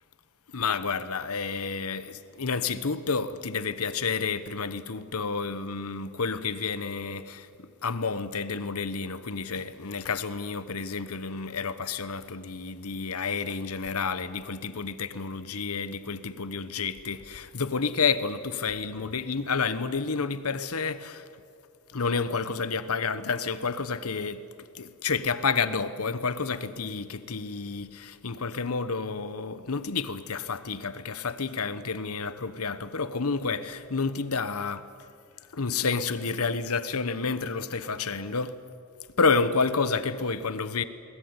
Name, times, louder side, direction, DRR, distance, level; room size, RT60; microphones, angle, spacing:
voice 1, 0.5-21.2 21.9-34.9 35.5-38.6 39.2-40.8, left 4 dB, 85° left, 1.1 m, -30 dB
22.0 x 19.5 x 9.7 m
head